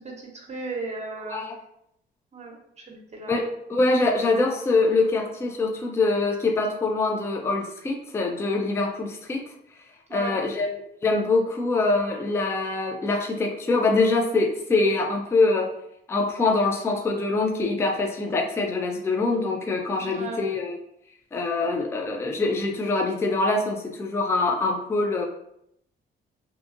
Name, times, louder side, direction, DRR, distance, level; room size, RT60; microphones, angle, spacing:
voice 1, 0.0-1.4 2.3-3.4 10.1-10.4 20.0-20.4, right 3 dB, 35° right, 0 dB, 0.8 m, -36 dB
voice 2, 3.3-9.4 10.1-15.7 16.1-20.8 21.3-25.3, left 3 dB, 15° left, 3 dB, 0.3 m, -24 dB
2.7 x 2.3 x 2.5 m, 0.75 s
cardioid pair, 90°, 20 cm